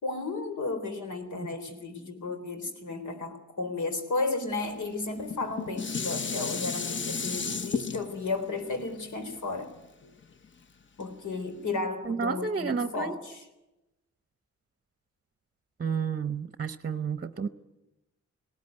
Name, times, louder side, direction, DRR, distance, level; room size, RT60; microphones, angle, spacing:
voice 1, 0.0-9.7 11.0-13.5, left 3 dB, 90° left, 7 dB, 3.9 m, -33 dB
Dishes pots and pans, 5.2-10.5 11.0-11.1, left 5 dB, 40° left, 1.0 m, -34 dB
voice 2, 12.1-13.1 15.8-17.5, right 6 dB, 35° right, 12 dB, 0.8 m, -31 dB
19.0 x 18.5 x 9.3 m, 0.96 s
wide cardioid pair, 160°, 29 cm